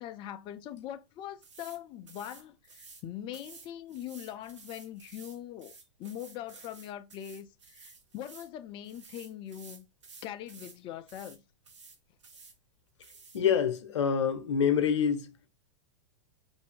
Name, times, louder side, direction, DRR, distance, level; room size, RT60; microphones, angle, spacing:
voice 1, 0.0-9.9 10.2-11.4, left 11 dB, 35° left, 0.4 m, -42 dB
sound 1, 1.4-1.8 2.1-3.0 3.3-8.5 8.8-10.8 11.1-11.4 11.6-12.6 13.0-13.4, right 4 dB, 90° right, 0.9 m, -53 dB
voice 2, 13.3-15.3, left 7 dB, 80° left, 0.7 m, -26 dB
2.6 x 2.6 x 3.4 m
hypercardioid pair, 110°, 15 cm